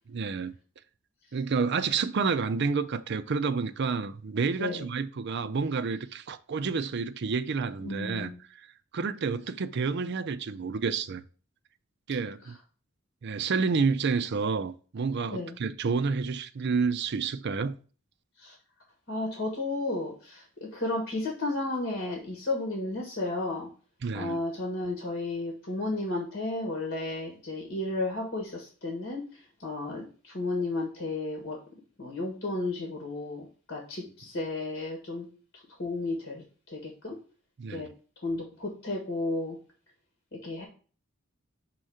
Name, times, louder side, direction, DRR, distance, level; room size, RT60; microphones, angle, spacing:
voice 1, 0.1-0.5 1.3-8.7 8.9-11.2 12.1-12.6 13.2-17.7 24.0-24.4 37.6-37.9, right 5 dB, 55° right, 0.5 m, -29 dB
voice 2, 7.8-8.4 15.3-15.6 18.4-18.5 19.1-23.7 24.1-29.2 29.6-31.6 32.0-35.3 35.8-36.4 36.7-37.2 37.7-37.9 38.2-39.6 40.3-40.7, left 2 dB, 55° left, 1.7 m, -33 dB
6.3 x 3.0 x 4.9 m
head